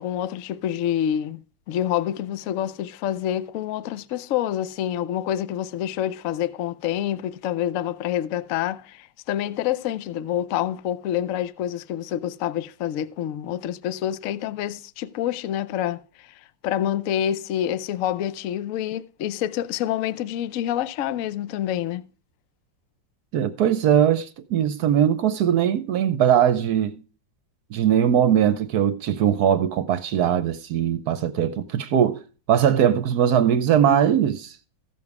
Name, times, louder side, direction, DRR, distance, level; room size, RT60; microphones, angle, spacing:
voice 1, 0.0-1.4 1.7-22.0, left 11 dB, 65° left, 0.8 m, -27 dB
voice 2, 23.3-27.0 27.7-32.2 32.5-34.6, right 9 dB, 65° right, 1.1 m, -20 dB
14.5 x 7.0 x 4.7 m
omnidirectional pair, 2.0 m